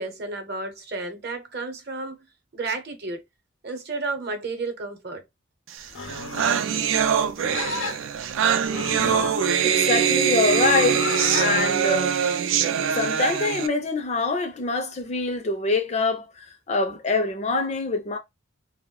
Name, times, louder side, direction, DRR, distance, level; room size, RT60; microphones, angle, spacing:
voice 1, 0.0-2.2 2.5-3.2 3.6-5.2, right 3 dB, 55° right, 0.7 m, -32 dB
Livestock farm animals working animals, 5.8-11.5, left 4 dB, 90° left, 0.6 m, -33 dB
sound 1, 5.8-5.9 6.1-13.7, right 8 dB, 80° right, 0.4 m, -23 dB
voice 2, 9.6-11.0 11.3-12.1 12.8-18.2, left 3 dB, 35° left, 0.4 m, -25 dB
2.3 x 2.1 x 3.6 m
head